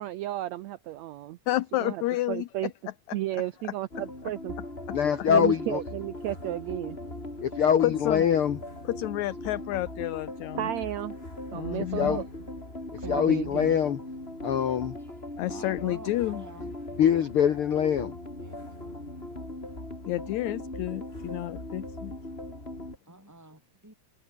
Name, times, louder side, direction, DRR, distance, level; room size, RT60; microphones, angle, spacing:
voice 1, 0.0-1.4 1.8-2.0 2.3-2.7 3.1-4.5 5.3-7.0 10.6-11.2 11.5-12.2 13.0-13.8, right 15 dB, 80° right, 1.6 m, -33 dB
voice 2, 1.5-2.7 3.1-3.2 5.2-5.3 7.8-8.2 8.9-10.7 11.5-12.2 15.4-16.4 20.1-22.1, left 16 dB, 70° left, 1.9 m, -30 dB
sound 1, 3.9-23.0, left 1 dB, 15° left, 6.9 m, -39 dB
voice 3, 4.9-5.8 7.4-8.6 11.9-12.2 13.0-14.0 14.4-15.0 17.0-18.1, left 8 dB, 55° left, 1.6 m, -24 dB
voice 4, 15.4-16.7 18.4-18.9 23.1-23.9, right 2 dB, 5° right, 6.2 m, -47 dB
omnidirectional pair, 3.9 m